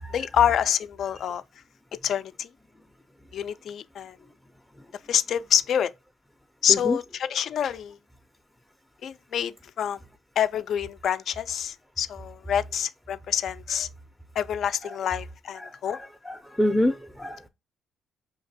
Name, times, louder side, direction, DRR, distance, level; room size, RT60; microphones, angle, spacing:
voice 1, 0.1-1.4 2.0-2.5 3.3-4.2 5.1-5.9 6.6-8.0 9.0-10.0 10.4-13.9 14.4-16.0, left 9 dB, 65° left, 0.3 m, -26 dB
voice 2, 15.6-17.5, left 1 dB, 5° left, 0.4 m, -27 dB
5.9 x 2.8 x 2.7 m
cardioid pair, 90°, 0 cm